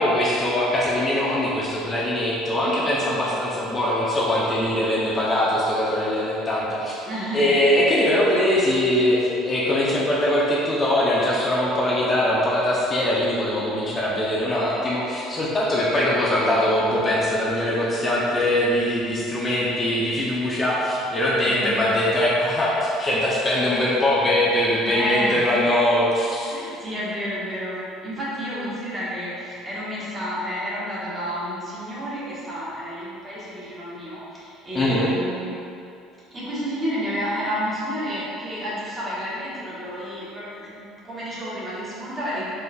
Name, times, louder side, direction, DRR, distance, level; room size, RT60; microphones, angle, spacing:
voice 1, 0.0-7.1 7.3-26.5 34.7-35.1, left 1 dB, 25° left, -6 dB, 0.6 m, -22 dB
voice 2, 7.0-7.5 21.4-21.8 24.9-25.5 26.5-35.5 36.3-42.5, equal, 20° right, -8 dB, 1.3 m, -30 dB
4.3 x 3.3 x 2.3 m, 2.6 s
supercardioid pair, 105°, 0 cm